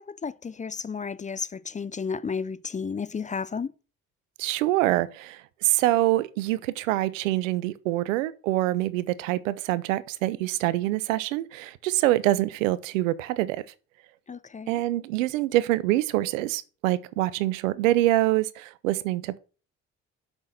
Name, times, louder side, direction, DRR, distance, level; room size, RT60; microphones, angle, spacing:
voice 1, 0.0-3.7 14.3-14.8, left 5 dB, 20° left, 0.4 m, -33 dB
voice 2, 4.4-13.6 14.7-19.4, right 16 dB, 90° right, 0.6 m, -25 dB
6.3 x 6.0 x 6.4 m
hypercardioid pair, 55°, 38 cm